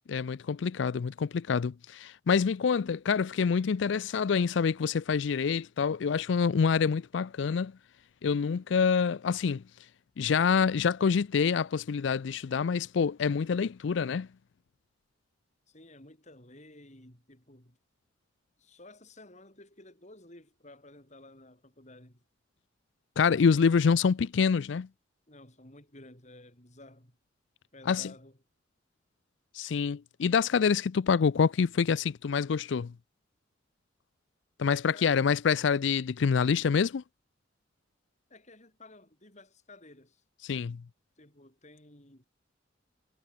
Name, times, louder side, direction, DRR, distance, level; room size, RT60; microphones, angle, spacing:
voice 1, 0.1-7.7 8.2-9.6 10.2-14.3 23.2-24.9 27.9-28.1 29.5-32.9 34.6-37.0 40.4-40.8, left 6 dB, 65° left, 0.4 m, -26 dB
voice 2, 15.7-17.8 18.6-22.2 25.3-27.2 27.7-28.4 34.9-35.2 38.3-40.2 41.2-42.3, left 2 dB, 35° left, 6.4 m, -53 dB
head